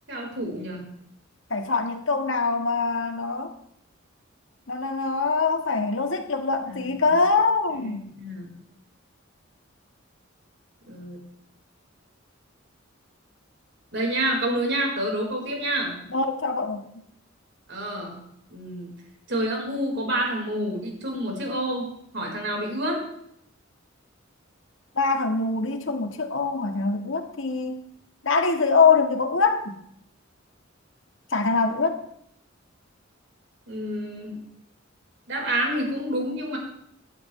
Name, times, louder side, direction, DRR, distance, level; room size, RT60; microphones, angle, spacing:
voice 1, 0.1-0.9 6.7-7.1 7.7-8.5 10.9-11.2 13.9-15.9 17.7-18.2 18.5-18.9 19.3-23.0 33.7-34.4 35.3-36.6, right 1 dB, 60° right, 0 dB, 4.8 m, -28 dB
voice 2, 1.5-3.5 4.7-8.1 16.1-16.8 25.0-27.8 28.2-29.8 31.3-32.0, left 4 dB, 75° left, 5 dB, 1.7 m, -23 dB
17.5 x 11.5 x 3.3 m, 0.72 s
head